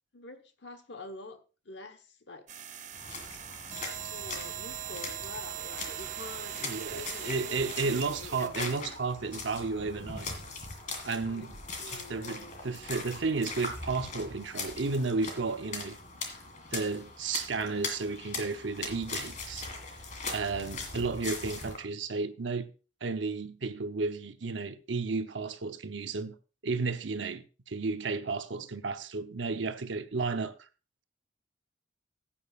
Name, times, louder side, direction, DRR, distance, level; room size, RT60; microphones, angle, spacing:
voice 1, 0.1-2.5 4.1-9.0 11.3-11.5 11.8-12.6, left 3 dB, 70° left, 1.2 m, -46 dB
sound 1, 2.5-8.5, right 11 dB, 40° right, 0.8 m, -40 dB
sound 2, 2.9-21.8, left 4 dB, 40° left, 2.0 m, -41 dB
voice 2, 6.6-10.3 11.0-11.6 11.8-16.0 16.7-19.7 20.3-22.7 23.0-26.3 26.6-30.7, right 4 dB, 80° right, 0.8 m, -33 dB
15.5 x 8.8 x 2.4 m
head